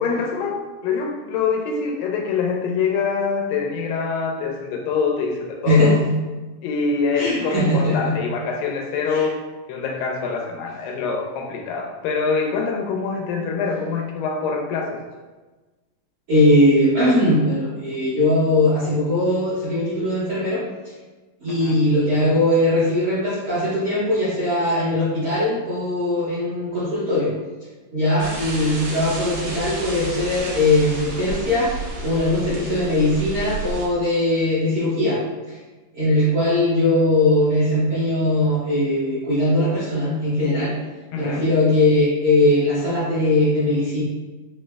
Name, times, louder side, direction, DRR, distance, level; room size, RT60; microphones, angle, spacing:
voice 1, 0.0-6.0 6.6-9.4 9.7-15.0 21.5-21.8 22.1-22.4 41.1-41.5, left 5 dB, 85° left, 1 dB, 2.2 m, -25 dB
voice 2, 5.6-6.1 7.2-8.1 9.1-9.2 16.3-20.6 21.4-27.3 27.9-31.7 32.0-35.2 35.9-40.7 41.2-44.0, left 1 dB, 65° right, -12 dB, 1.3 m, -20 dB
sound 1, 28.2-33.9, right 2 dB, 85° right, 1.5 m, -31 dB
5.2 x 3.1 x 2.2 m, 1.2 s
omnidirectional pair, 4.1 m